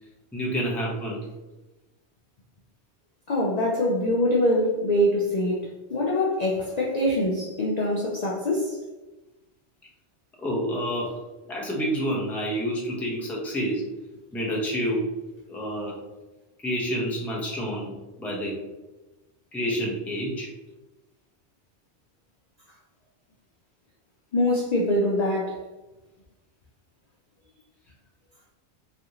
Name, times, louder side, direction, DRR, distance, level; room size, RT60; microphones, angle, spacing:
voice 1, 0.3-1.3 10.4-11.2 11.5-13.9 14.3-15.1 15.5-16.0 16.6-18.6 19.5-20.5, equal, ahead, -4 dB, 0.5 m, -28 dB
voice 2, 3.3-8.8 24.3-25.6, left 1 dB, 55° left, -3 dB, 0.4 m, -24 dB
3.2 x 2.5 x 2.8 m, 1.1 s
omnidirectional pair, 1.2 m